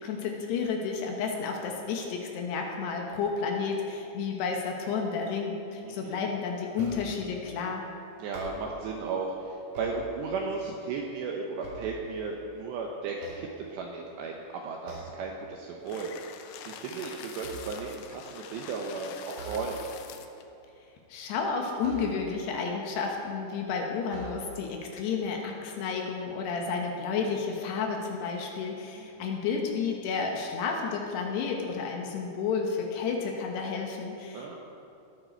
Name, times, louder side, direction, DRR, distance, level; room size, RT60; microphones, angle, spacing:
voice 1, 0.0-7.8 21.1-34.6, left 5 dB, 70° left, 1 dB, 2.8 m, -31 dB
voice 2, 5.8-6.3 8.2-16.1 16.7-19.8 29.0-29.4 34.3-34.6, right 4 dB, 75° right, 0 dB, 2.6 m, -35 dB
sound 1, 6.7-7.3 8.2-9.0 9.5-10.6 11.1-12.6 13.1-14.1 14.8-15.3 15.7-16.0 16.4-18.1 19.3-20.1 21.8-22.5 23.3-23.4 24.0-24.8, right 3 dB, 30° right, 4.3 m, -44 dB
sound 2, 15.9-20.4, left 8 dB, 85° left, 2.5 m, -45 dB
19.0 x 10.5 x 4.5 m, 2.8 s
omnidirectional pair, 6.0 m